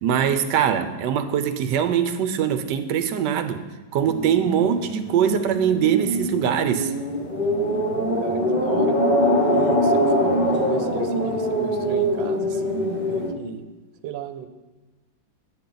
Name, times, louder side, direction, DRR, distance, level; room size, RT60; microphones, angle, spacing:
voice 1, 0.0-3.6 3.9-6.9, right 8 dB, 75° right, 9 dB, 1.2 m, -22 dB
voice 2, 0.6-0.9 4.7-4.8 7.9-9.0 9.5-13.6 14.0-14.5, right 8 dB, 90° right, 9 dB, 1.4 m, -35 dB
sound 1, 4.0-13.3, equal, 30° left, 0.8 m, -23 dB
8.7 x 8.1 x 3.9 m, 1.2 s
omnidirectional pair, 2.0 m